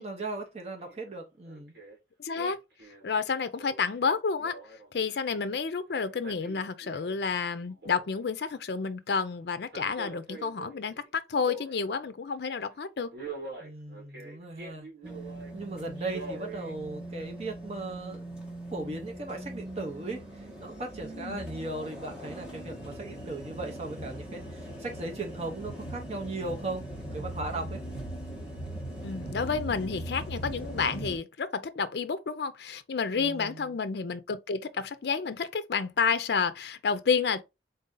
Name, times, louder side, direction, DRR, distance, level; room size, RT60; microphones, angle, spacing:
voice 1, 0.0-1.7 13.6-14.9 15.5-18.2 18.7-20.2 20.6-26.8 27.1-27.8 33.2-33.7, right 2 dB, 35° right, 0.8 m, -37 dB
Male speech man speaking, 0.9-1.1 1.4-2.0 2.3-5.6 6.0-7.4 7.6-8.5 9.6-12.0 12.4-12.7 13.1-15.5 16.0-16.7 17.2-17.3, right 3 dB, 60° right, 1.8 m, -44 dB
voice 2, 2.2-2.6 3.0-4.6 4.9-13.1 21.1-21.4 29.0-37.4, left 5 dB, 70° left, 0.5 m, -30 dB
sound 1, 15.0-31.2, right 1 dB, 5° right, 1.3 m, -40 dB
3.9 x 2.7 x 3.7 m
head